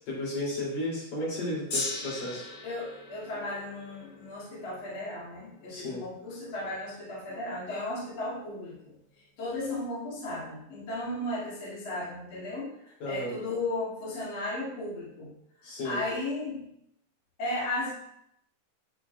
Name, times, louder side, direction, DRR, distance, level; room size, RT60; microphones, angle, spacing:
voice 1, 0.1-2.5 5.7-6.0 13.0-13.4 15.6-16.0, left 1 dB, 75° left, -7 dB, 4.7 m, -33 dB
Gong, 1.7-8.1 8.8-8.9, left 2 dB, 55° left, 1.5 m, -40 dB
voice 2, 2.6-8.9 9.4-15.3 15.8-16.6 17.4-17.9, left 2 dB, 40° left, -8 dB, 2.8 m, -35 dB
9.6 x 5.1 x 2.4 m, 0.75 s
omnidirectional pair, 4.0 m